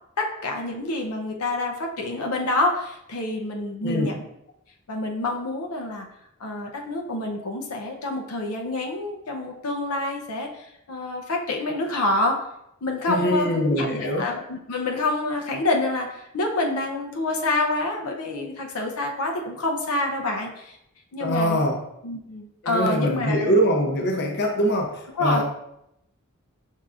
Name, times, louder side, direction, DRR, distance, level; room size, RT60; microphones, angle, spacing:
voice 1, 0.2-4.2 4.9-6.1 6.4-12.4 12.8-20.8 21.1-21.6 22.0-23.5 25.1-25.4, left 2 dB, 90° left, 2 dB, 0.6 m, -27 dB
voice 2, 13.1-14.3 21.2-21.8 22.6-25.4, equal, 50° left, 2 dB, 0.7 m, -23 dB
5.7 x 3.6 x 2.4 m, 0.80 s
head